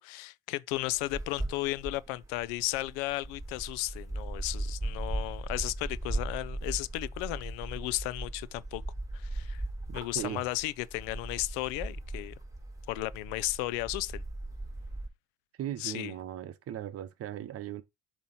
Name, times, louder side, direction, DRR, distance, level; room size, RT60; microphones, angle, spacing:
voice 1, 0.0-8.8 9.1-9.6 9.9-12.3 12.9-14.2 15.8-16.1, left 19 dB, 85° left, 0.5 m, -34 dB
sound 1, 0.7-15.1, right 2 dB, 10° right, 3.3 m, -38 dB
voice 2, 9.9-10.5 15.6-17.8, right 11 dB, 50° right, 0.9 m, -38 dB
6.9 x 3.0 x 5.5 m
supercardioid pair, 90°, 31 cm